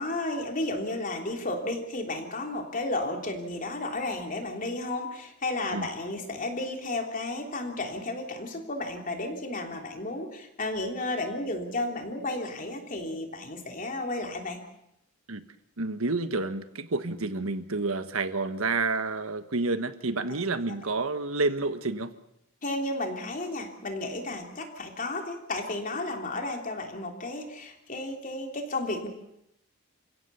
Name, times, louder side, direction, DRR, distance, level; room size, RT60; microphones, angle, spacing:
voice 1, 0.0-14.6 22.6-29.1, left 2 dB, 40° left, 3 dB, 3.3 m, -33 dB
voice 2, 15.8-22.1, right 3 dB, 90° right, 10 dB, 1.4 m, -29 dB
29.0 x 16.5 x 7.0 m, 0.80 s
head